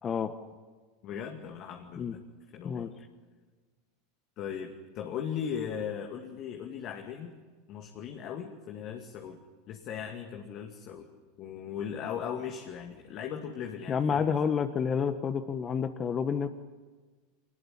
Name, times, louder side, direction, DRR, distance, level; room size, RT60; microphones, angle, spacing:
voice 1, 0.0-0.3 2.0-2.2 2.6-2.9 13.9-16.5, left 6 dB, 30° left, 9 dB, 1.4 m, -29 dB
voice 2, 1.0-2.2 2.5-2.9 4.4-7.3 7.7-9.4 9.7-11.1 11.4-14.5, left 8 dB, 45° left, 3 dB, 2.4 m, -38 dB
25.5 x 20.0 x 9.9 m, 1.4 s
hypercardioid pair, 85°, 0 cm